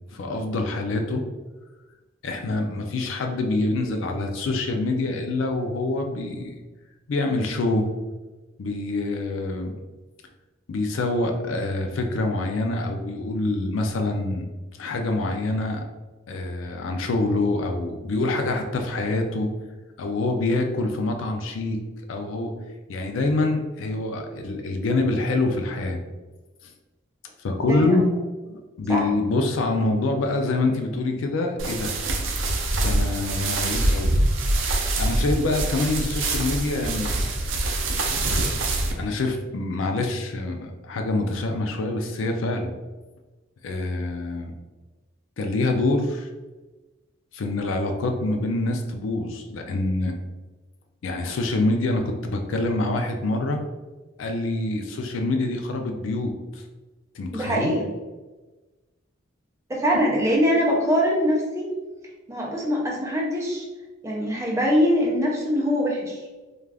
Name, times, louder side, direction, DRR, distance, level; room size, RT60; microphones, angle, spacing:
voice 1, 0.1-1.2 2.2-6.6 7.1-7.8 8.6-9.7 10.7-14.5 14.8-15.8 16.3-19.5 20.0-21.8 22.1-22.5 22.9-26.0 27.4-28.1 28.4-31.9 32.8-34.1 35.0-37.1 39.0-42.7 43.6-44.5 45.4-46.3 47.3-50.1 51.0-53.6 54.2-56.6 57.1-57.7, left 2 dB, 80° left, 4 dB, 0.4 m, -25 dB
sound 1, 31.6-38.9, right 2 dB, 75° right, 0.4 m, -24 dB
voice 2, 57.3-57.8 59.7-61.7 62.3-63.6 64.0-66.2, equal, 15° right, -2 dB, 0.5 m, -23 dB
2.4 x 2.3 x 3.3 m, 1.2 s
head